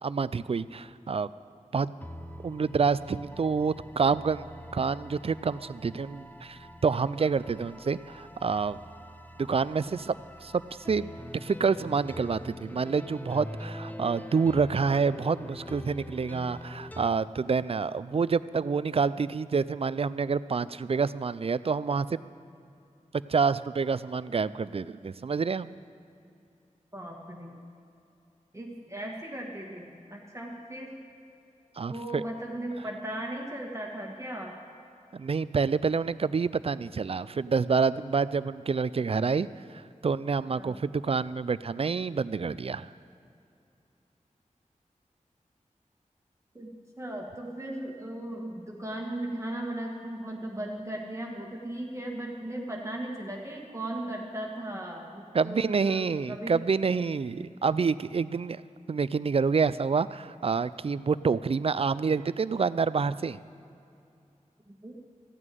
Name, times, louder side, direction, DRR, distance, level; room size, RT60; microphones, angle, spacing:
voice 1, 0.0-1.3 1.7-1.9 2.4-4.5 4.7-8.8 9.4-10.1 10.4-10.6 10.9-11.1 11.4-22.2 23.3-25.7 31.8-32.2 35.1-39.5 39.7-42.9 55.3-58.6 58.9-63.4, right 5 dB, 45° right, 16 dB, 0.4 m, -27 dB
sound 1, 2.0-17.1, equal, 15° left, 0.7 m, -44 dB
voice 2, 26.9-27.6 28.5-30.9 31.9-34.6 40.6-40.8 46.5-56.6 64.7-65.0, right 1 dB, 20° right, -1 dB, 1.5 m, -37 dB
14.5 x 6.2 x 9.1 m, 2.6 s
wide cardioid pair, 55°, 13 cm